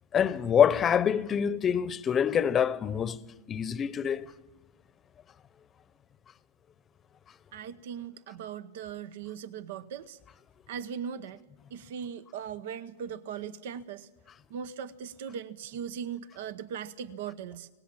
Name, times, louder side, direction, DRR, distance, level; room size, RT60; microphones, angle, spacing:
voice 1, 0.1-3.2 3.5-4.3, left 8 dB, 25° left, 0.9 m, -25 dB
voice 2, 7.5-10.2 10.7-11.4 11.7-14.1 14.5-17.7, right 8 dB, 70° right, 0.9 m, -39 dB
25.5 x 18.5 x 7.6 m
hypercardioid pair, 115°, 0 cm